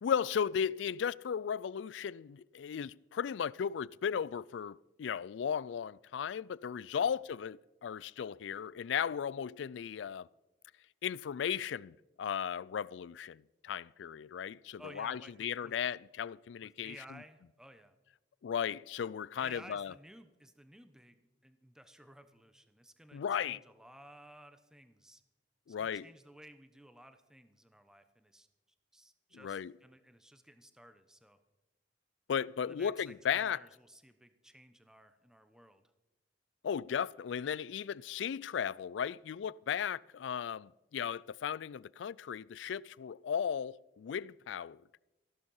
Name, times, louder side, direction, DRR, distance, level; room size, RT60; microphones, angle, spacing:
voice 1, 0.0-10.3 11.0-17.0 18.4-19.9 23.1-23.6 25.7-26.1 29.3-29.7 32.3-33.6 36.6-44.8, left 7 dB, 85° left, 0.3 m, -36 dB
voice 2, 14.8-15.7 16.6-18.0 19.4-25.2 25.7-28.5 28.9-31.4 32.6-35.8, equal, 5° right, 0.9 m, -56 dB
14.5 x 12.0 x 5.5 m
head